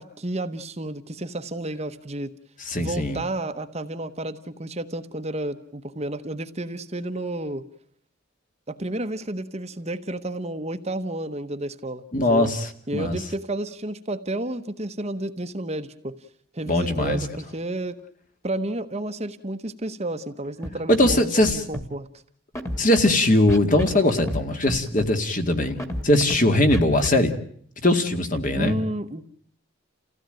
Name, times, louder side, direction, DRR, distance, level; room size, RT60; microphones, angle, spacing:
voice 1, 0.0-2.3 2.8-7.6 8.7-12.0 12.3-12.5 12.9-16.2 16.5-18.0 18.4-22.1 28.5-29.3, right 1 dB, 30° right, 8 dB, 1.1 m, -31 dB
voice 2, 2.6-3.2 12.1-13.2 16.7-17.2 20.9-21.6 22.8-25.8 26.0-27.3 27.8-28.8, left 1 dB, 40° left, 6 dB, 2.2 m, -20 dB
Scratching (performance technique), 20.6-20.7 20.9-21.2 21.4-21.8 22.5-23.1 23.5-23.9 24.2-24.4 24.7-25.1 25.8-26.4 26.7-27.1, equal, 15° left, 2.3 m, -29 dB
29.5 x 16.0 x 9.1 m, 0.63 s
head